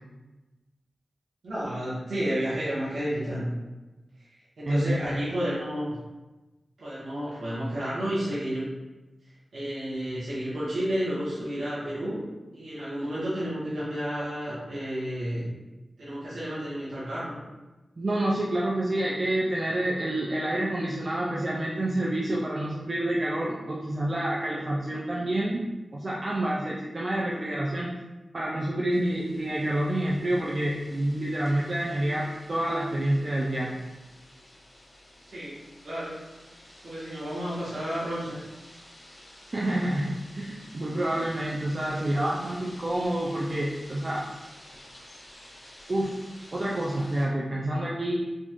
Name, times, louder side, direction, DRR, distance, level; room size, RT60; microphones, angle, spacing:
voice 1, 1.4-3.5 4.2-4.3 4.6-5.9 6.8-8.6 9.5-12.3 12.5-15.5 16.0-17.4 35.2-35.5 35.8-36.1 36.8-38.4 41.9-42.4, equal, 90° right, -11 dB, 1.5 m, -31 dB
voice 2, 4.7-5.2 18.0-25.6 25.9-27.9 28.3-33.8 39.5-44.3 45.9-46.1 46.5-48.2, right 1 dB, 50° right, -5 dB, 0.5 m, -28 dB
sound 1, 28.9-47.3, left 1 dB, 45° left, 1.2 m, -51 dB
4.1 x 2.5 x 3.0 m, 1.1 s
cardioid pair, 55°, 0 cm